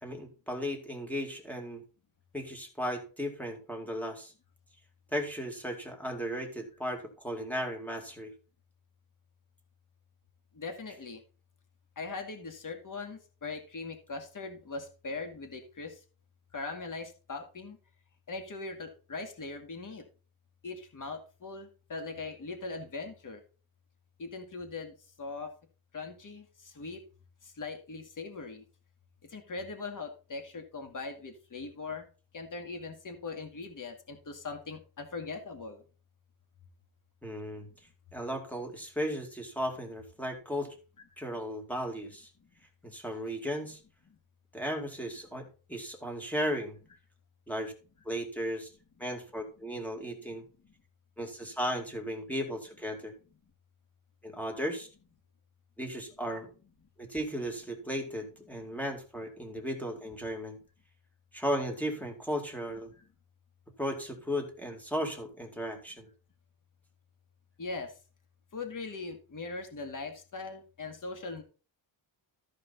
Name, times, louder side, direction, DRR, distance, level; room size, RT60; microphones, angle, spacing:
voice 1, 0.0-1.8 2.3-4.3 5.1-8.3 37.2-37.7 38.1-40.7 41.2-42.3 42.8-43.8 44.5-46.8 47.5-47.7 48.0-48.7 49.0-50.4 51.2-53.1 54.2-54.9 55.8-56.5 57.0-60.6 61.3-62.9 63.8-66.1, equal, 5° left, 3 dB, 2.4 m, -35 dB
voice 2, 10.5-11.2 12.0-16.0 16.5-17.8 18.3-20.0 20.6-23.4 24.2-25.5 25.9-27.0 27.4-28.6 29.3-32.1 32.3-35.8 42.4-42.5 62.9-63.0 67.6-67.9 68.5-71.4, left 3 dB, 40° left, 5 dB, 2.2 m, -40 dB
14.0 x 5.2 x 4.1 m, 0.35 s
cardioid pair, 130°, 48 cm